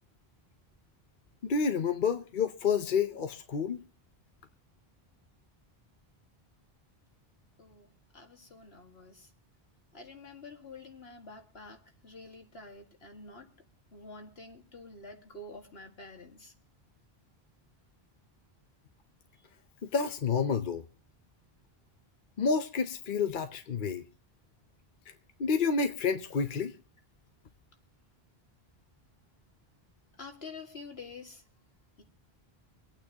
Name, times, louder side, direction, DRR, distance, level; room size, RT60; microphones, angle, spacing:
voice 1, 1.4-3.8 19.9-20.8 22.4-24.1 25.4-26.7, left 5 dB, 55° left, 0.9 m, -29 dB
voice 2, 8.1-9.3 9.9-13.5 13.9-16.5 30.2-31.4 32.0-32.1, left 3 dB, 75° left, 2.3 m, -48 dB
25.5 x 9.0 x 2.9 m
omnidirectional pair, 1.0 m